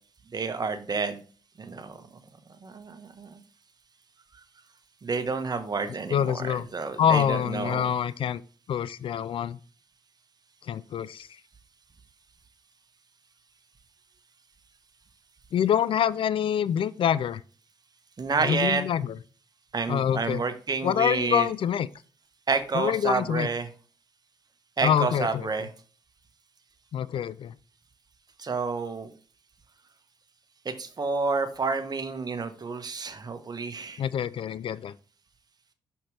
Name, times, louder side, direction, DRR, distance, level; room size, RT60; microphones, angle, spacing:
voice 1, 0.3-1.2 1.6-2.0 2.6-3.4 5.0-7.9 18.2-18.8 19.7-21.5 22.5-23.7 24.8-25.7 28.4-29.1 30.6-34.0, right 4 dB, 40° right, 1.3 m, -29 dB
voice 2, 6.1-6.7 7.0-8.4 8.7-9.6 10.7-11.3 15.5-17.4 18.4-19.1 19.9-20.4 20.8-21.9 22.7-23.5 24.8-25.5 26.9-27.5 34.0-34.9, left 9 dB, 55° left, 0.4 m, -26 dB
6.2 x 5.8 x 3.3 m
hypercardioid pair, 45°, 11 cm